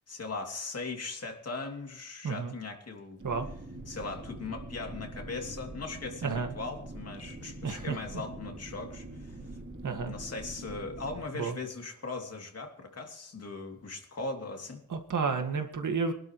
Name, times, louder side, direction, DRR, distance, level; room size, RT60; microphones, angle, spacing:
voice 1, 0.1-3.2 3.9-9.4 10.1-14.8, left 3 dB, 55° left, 3 dB, 2.9 m, -39 dB
sound 1, 3.2-11.2, right 1 dB, 45° right, 4.6 m, -44 dB
voice 2, 6.2-6.5 7.6-8.2 9.8-10.1 11.3-11.6 14.9-16.1, right 5 dB, 85° right, 6 dB, 2.0 m, -31 dB
23.5 x 12.0 x 3.2 m, 0.69 s
wide cardioid pair, 175°, 30 cm